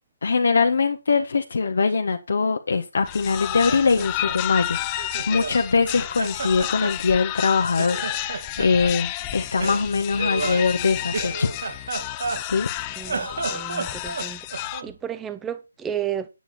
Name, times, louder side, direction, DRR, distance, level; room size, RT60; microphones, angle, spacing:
voice 1, 0.2-11.5 12.5-12.7, left 4 dB, 65° left, 1.3 m, -22 dB
sound 1, 3.1-14.8, left 14 dB, 20° left, 0.7 m, -31 dB
Laughter, 3.3-5.6 5.9-7.5 7.8-8.9 9.6-12.7 13.0-15.0, right 4 dB, 65° right, 2.8 m, -32 dB
voice 2, 13.0-16.3, right 9 dB, 10° right, 0.9 m, -33 dB
9.1 x 8.9 x 4.3 m
figure-of-eight pair, 155°, 0 cm